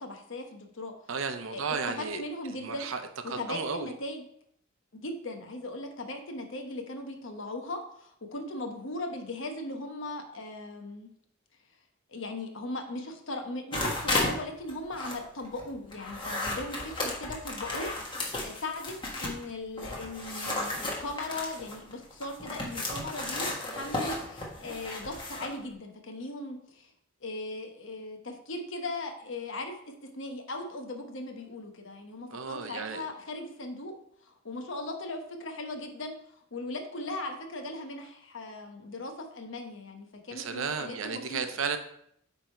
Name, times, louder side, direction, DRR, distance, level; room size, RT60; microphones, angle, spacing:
voice 1, 0.0-0.9 1.5-2.9 3.2-4.2 4.9-11.1 12.1-17.9 18.4-26.9 27.2-34.0 34.2-41.4, left 2 dB, 65° left, 4 dB, 1.1 m, -38 dB
voice 2, 1.1-2.2 2.5-3.9 32.3-33.1 40.3-41.8, right 5 dB, 75° right, 8 dB, 0.7 m, -34 dB
sound 1, 13.7-14.4 14.7-19.4 19.8-25.5, left 2 dB, 25° left, 1.4 m, -34 dB
8.9 x 3.5 x 4.4 m, 0.71 s
head